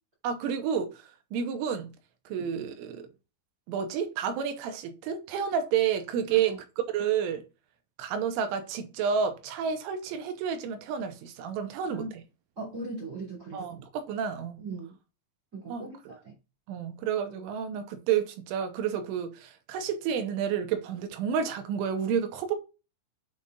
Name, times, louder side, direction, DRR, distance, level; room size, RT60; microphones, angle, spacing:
voice 1, 0.2-1.9 2.3-3.1 3.7-6.6 6.9-7.4 8.0-12.2 13.5-14.6 15.7-16.1 16.7-22.5, right 7 dB, 85° right, 3.2 m, -30 dB
voice 2, 12.6-13.6 14.6-14.9 15.5-16.3, right 3 dB, 20° right, 2.2 m, -39 dB
8.2 x 5.3 x 2.4 m
omnidirectional pair, 5.7 m